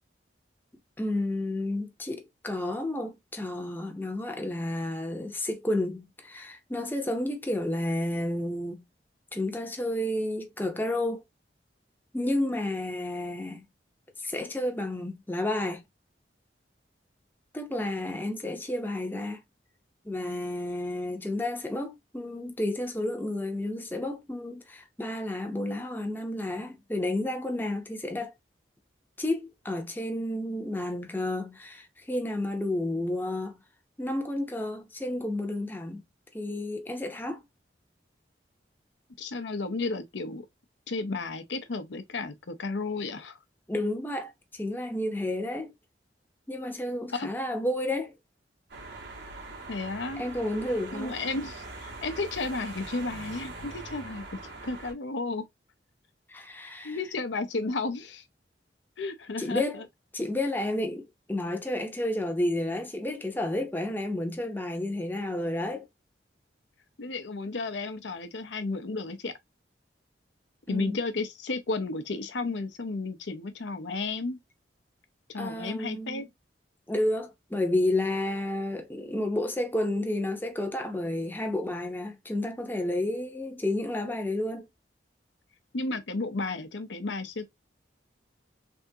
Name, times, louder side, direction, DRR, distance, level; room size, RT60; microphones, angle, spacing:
voice 1, 1.0-8.8 9.3-11.2 12.1-13.6 14.2-15.8 17.5-19.4 20.0-28.3 29.2-33.6 34.0-36.0 36.3-37.4 43.7-45.7 46.5-48.1 50.2-51.1 56.3-57.0 59.4-59.8 60.1-65.8 70.7-71.0 75.4-76.3 76.9-84.7, left 1 dB, 10° left, 0.6 m, -31 dB
voice 2, 39.2-40.5 40.9-43.4 47.1-47.3 49.7-50.2 50.9-55.5 56.8-58.2 59.0-59.8 67.0-69.3 70.7-74.4 75.3-76.2 85.7-87.4, left 3 dB, 85° left, 0.7 m, -33 dB
sound 1, 48.7-54.9, right 3 dB, 85° right, 1.6 m, -42 dB
3.5 x 3.5 x 2.7 m
head